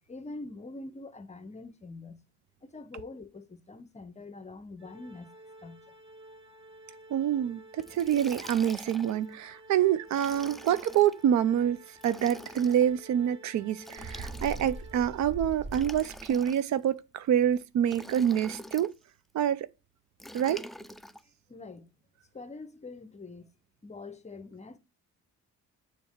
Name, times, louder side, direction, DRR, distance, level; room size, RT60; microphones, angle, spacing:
voice 1, 0.1-2.2 2.6-5.3 5.6-5.9 21.5-21.9 22.3-23.5 23.8-24.8, left 3 dB, 20° left, 0.7 m, -44 dB
Organ, 4.8-15.7, right 1 dB, 15° right, 1.3 m, -53 dB
voice 2, 7.1-18.9 19.3-19.7 20.3-20.6, right 10 dB, 65° right, 0.5 m, -27 dB
Liquid, 7.8-9.2 10.1-11.1 12.0-12.9 13.8-14.9 15.7-16.9 17.8-18.9 20.2-21.2, equal, ahead, 0.3 m, -46 dB
Bird, 14.0-16.4, right 2 dB, 35° right, 0.9 m, -40 dB
7.1 x 3.1 x 4.4 m
cardioid pair, 90°, 30 cm